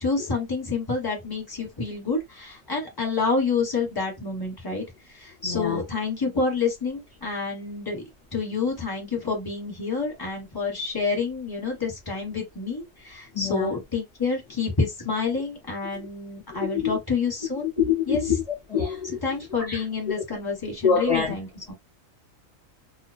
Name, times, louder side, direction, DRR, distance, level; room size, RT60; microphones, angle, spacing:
voice 1, 0.0-4.8 5.2-8.0 8.3-17.7 18.1-18.2 19.1-21.7, left 4 dB, 20° left, 1.0 m, -28 dB
voice 2, 5.4-5.8 13.3-13.7 15.9-16.1 16.6-17.0 17.6-18.4 18.7-19.2 19.7-19.8 20.8-21.3, left 7 dB, 35° left, 0.6 m, -25 dB
2.3 x 2.2 x 2.4 m
omnidirectional pair, 1.4 m